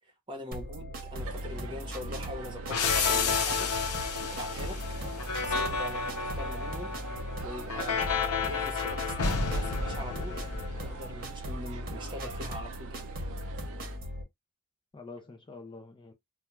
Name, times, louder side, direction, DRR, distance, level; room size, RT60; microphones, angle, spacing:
voice 1, 0.3-3.7 4.3-4.8 5.3-7.0 7.4-10.5 10.8-13.1, equal, 20° right, 1.0 m, -42 dB
sound 1, 0.5-14.2, equal, 45° right, 0.9 m, -38 dB
sound 2, 1.1-14.0, right 5 dB, 65° right, 0.4 m, -46 dB
sound 3, 2.7-11.2, left 5 dB, 75° left, 0.7 m, -31 dB
voice 2, 2.9-3.4 14.9-16.1, left 4 dB, 20° left, 0.4 m, -45 dB
2.3 x 2.2 x 2.9 m
head